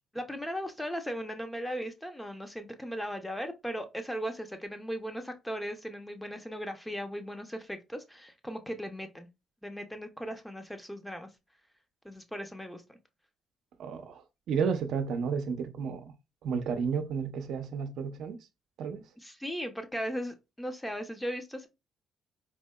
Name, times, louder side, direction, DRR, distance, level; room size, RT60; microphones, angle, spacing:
voice 1, 0.1-9.3 9.6-11.3 12.0-13.0 19.2-21.7, equal, 5° left, 0.7 m, -37 dB
voice 2, 13.8-16.1 16.4-18.4 18.8-19.0, right 6 dB, 75° right, 0.5 m, -32 dB
4.2 x 2.6 x 2.2 m
cardioid pair, 90°, 0 cm